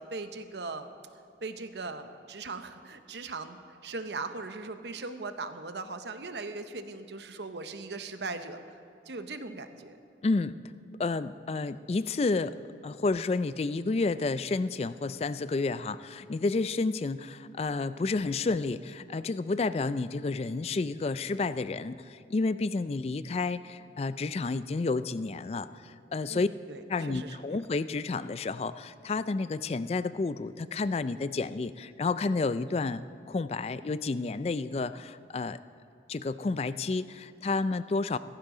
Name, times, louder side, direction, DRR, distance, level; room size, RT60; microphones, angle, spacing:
voice 1, 0.0-8.6 9.1-10.0 26.3-27.6, right 3 dB, 75° right, 9 dB, 0.8 m, -39 dB
voice 2, 10.2-10.6 11.0-12.6 12.8-26.5 26.9-35.6 36.1-38.2, left 3 dB, 35° left, 14 dB, 0.3 m, -30 dB
16.5 x 15.0 x 3.8 m, 2.7 s
head